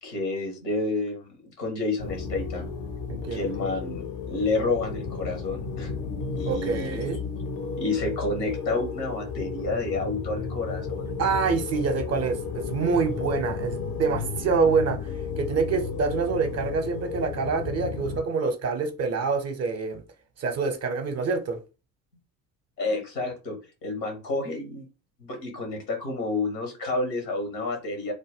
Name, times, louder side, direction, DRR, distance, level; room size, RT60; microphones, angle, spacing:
voice 1, 0.0-2.7 3.3-5.9 6.4-7.1 7.8-11.1 22.8-24.8 25.2-28.1, left 2 dB, 80° left, 1.4 m, -30 dB
sound 1, 2.0-18.2, left 5 dB, 40° left, 0.6 m, -33 dB
voice 2, 3.1-3.4 6.5-7.2 11.2-15.0 15.4-20.0 20.4-21.6, right 4 dB, 30° right, 0.7 m, -26 dB
3.4 x 2.1 x 3.5 m
figure-of-eight pair, 60°, 49 cm